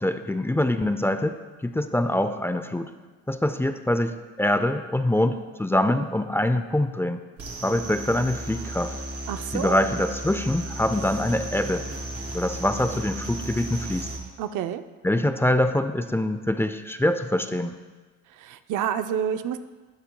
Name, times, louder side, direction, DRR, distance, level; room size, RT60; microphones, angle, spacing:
voice 1, 0.0-2.9 3.3-7.2 7.6-8.9 9.5-11.9 12.3-14.1 15.0-17.7, left 1 dB, 10° left, 9 dB, 0.5 m, -24 dB
sound 1, 7.4-14.2, right 1 dB, 55° right, 3.2 m, -35 dB
voice 2, 9.3-9.9 14.4-14.8 18.4-19.6, right 9 dB, 80° right, 10 dB, 0.6 m, -28 dB
14.0 x 10.0 x 2.3 m, 1.3 s
cardioid pair, 90°, 30 cm